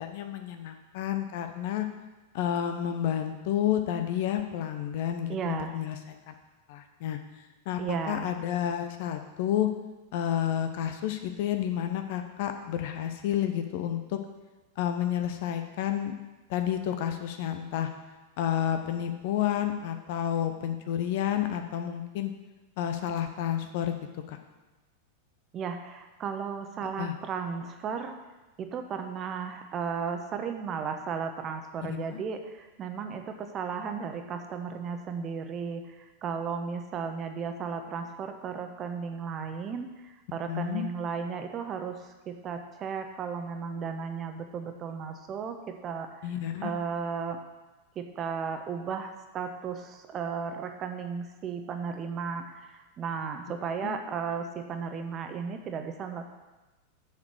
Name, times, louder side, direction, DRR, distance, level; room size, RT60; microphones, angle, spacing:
voice 1, 0.0-1.9 2.3-6.3 6.7-7.2 7.7-9.7 10.1-14.2 14.8-16.1 16.5-17.9 18.4-22.3 22.8-23.9 24.3-24.4 27.0-27.1 31.8-32.2 40.5-40.9 46.2-46.7 53.8-53.9, left 10 dB, 50° left, 7 dB, 0.9 m, -30 dB
voice 2, 5.3-5.7 7.8-8.3 25.5-28.2 28.6-36.0 36.2-46.3 46.6-47.4 48.0-56.2, right 6 dB, 30° right, 6 dB, 1.0 m, -35 dB
7.1 x 7.0 x 7.8 m, 1.2 s
figure-of-eight pair, 90°, 0 cm